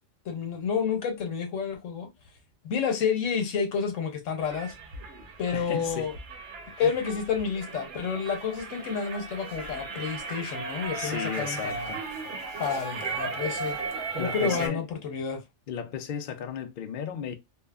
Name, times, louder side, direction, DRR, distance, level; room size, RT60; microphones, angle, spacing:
voice 1, 0.2-2.1 2.6-4.7 5.4-6.1 6.8-12.0 12.6-13.8 14.1-15.4, left 6 dB, 85° left, 1.2 m, -30 dB
sound 1, 4.4-14.7, right 4 dB, 70° right, 1.0 m, -36 dB
voice 2, 5.5-6.1 6.8-6.9 10.9-12.0 14.2-14.8 15.7-17.3, left 7 dB, 60° left, 0.6 m, -34 dB
3.1 x 2.1 x 2.3 m
omnidirectional pair, 1.3 m